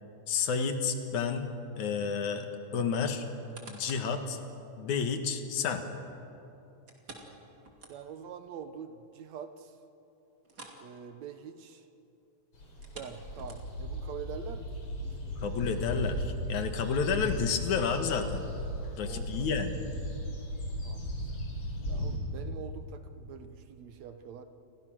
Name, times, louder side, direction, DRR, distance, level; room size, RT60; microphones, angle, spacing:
voice 1, 0.3-2.5 2.7-3.3 3.7-4.4 4.8-5.8 15.4-18.5 19.0-19.8, left 5 dB, 70° left, 7 dB, 2.8 m, -30 dB
sound 1, 3.2-4.2 4.7-4.8 6.9-8.3 8.7-8.8 9.2-9.3 10.4-10.9 11.1-11.4 12.7-13.9 14.6-14.7, right 3 dB, 30° right, 3.0 m, -50 dB
voice 2, 7.9-9.8 10.8-11.9 12.9-14.9 19.0-19.3 20.8-21.2 21.9-24.4, right 7 dB, 70° right, 9 dB, 2.1 m, -45 dB
sound 2, 12.5-22.2, equal, 45° left, 5.1 m, -36 dB
29.5 x 23.0 x 6.3 m, 2.9 s
omnidirectional pair, 3.6 m